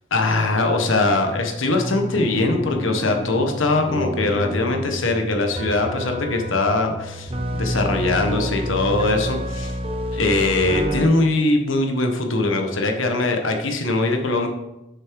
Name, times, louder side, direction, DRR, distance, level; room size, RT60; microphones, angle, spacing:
voice 1, 0.1-9.7 10.1-14.5, left 2 dB, 80° left, 4 dB, 1.2 m, -21 dB
sound 1, 1.8-11.0, equal, 30° right, 0.9 m, -28 dB
7.3 x 7.0 x 4.7 m, 0.94 s
head